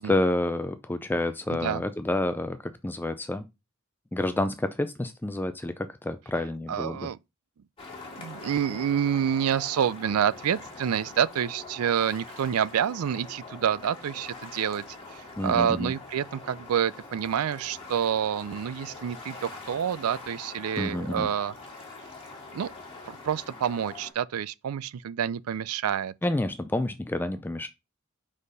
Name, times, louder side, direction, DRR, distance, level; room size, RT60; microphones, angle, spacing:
voice 1, 0.0-3.4 4.1-7.1 15.4-15.9 20.8-21.3 26.2-27.7, left 1 dB, 10° left, 0.3 m, -29 dB
voice 2, 6.7-7.2 8.2-14.8 15.4-21.5 22.5-22.7 23.1-26.1, right 8 dB, 85° right, 0.4 m, -28 dB
sound 1, 7.8-24.1, left 3 dB, 25° left, 2.1 m, -44 dB
5.0 x 4.3 x 5.4 m
head